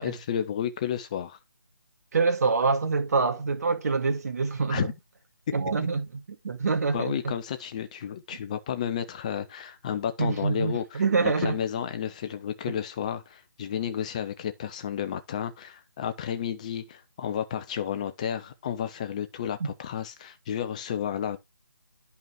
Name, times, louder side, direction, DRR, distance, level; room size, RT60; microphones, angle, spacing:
voice 1, 0.0-1.4 4.7-4.9 5.5-5.6 6.9-21.4, left 9 dB, 20° left, 0.5 m, -32 dB
voice 2, 2.1-4.9 5.5-7.3 10.2-11.6 19.6-19.7, right 4 dB, 45° right, 2.1 m, -26 dB
10.5 x 5.5 x 3.1 m
figure-of-eight pair, 155°, 11 cm